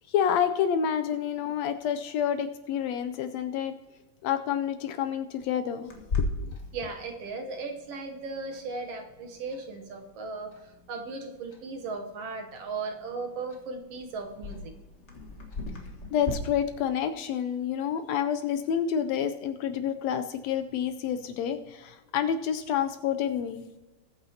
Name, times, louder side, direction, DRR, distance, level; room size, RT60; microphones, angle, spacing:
voice 1, 0.1-3.7 4.2-5.9 6.2-6.5 16.1-23.6, left 8 dB, 80° left, 9 dB, 1.7 m, -28 dB
Clock, 5.9-16.3, left 3 dB, 40° left, 1.1 m, -39 dB
voice 2, 6.7-14.7, right 3 dB, 65° right, 4 dB, 1.8 m, -37 dB
19.5 x 8.6 x 2.8 m, 1.1 s
omnidirectional pair, 3.3 m